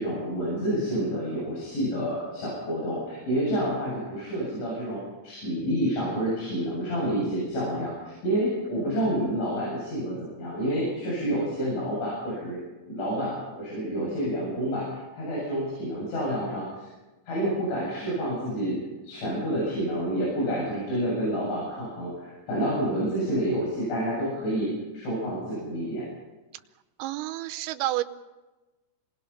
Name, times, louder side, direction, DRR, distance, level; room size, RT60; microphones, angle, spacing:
voice 1, 0.0-12.6 12.9-16.9 17.3-24.7 24.9-26.1, equal, 65° left, -5 dB, 9.9 m, -29 dB
voice 2, 27.0-28.0, right 15 dB, 90° right, 10 dB, 3.5 m, -29 dB
27.0 x 21.0 x 5.7 m, 1.1 s
omnidirectional pair, 5.8 m